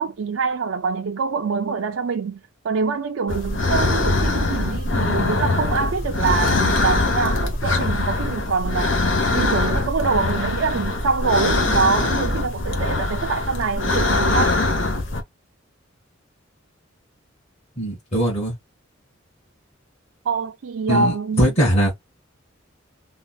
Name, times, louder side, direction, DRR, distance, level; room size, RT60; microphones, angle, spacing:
voice 1, 0.0-9.0 9.3-14.6 20.2-21.5, right 4 dB, 80° right, 0.4 m, -25 dB
sound 1, 3.3-15.2, left 2 dB, 70° left, 1.0 m, -22 dB
voice 2, 17.8-18.5 20.9-21.9, right 1 dB, 35° left, 1.8 m, -20 dB
3.7 x 2.4 x 2.2 m
head